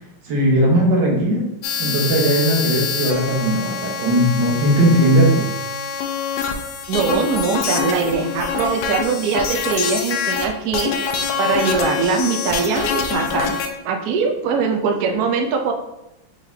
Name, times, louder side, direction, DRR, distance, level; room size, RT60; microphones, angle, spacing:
voice 1, 0.2-1.5 1.8-5.5, right 1 dB, 65° right, -2 dB, 1.7 m, -18 dB
sound 1, 1.6-10.5 10.7-13.7, left 6 dB, 80° left, 1.4 m, -25 dB
voice 2, 6.9-10.9 11.4-13.5 13.8-15.7, right 5 dB, 80° right, 3 dB, 0.8 m, -21 dB
4.7 x 3.9 x 2.7 m, 0.89 s
omnidirectional pair, 2.3 m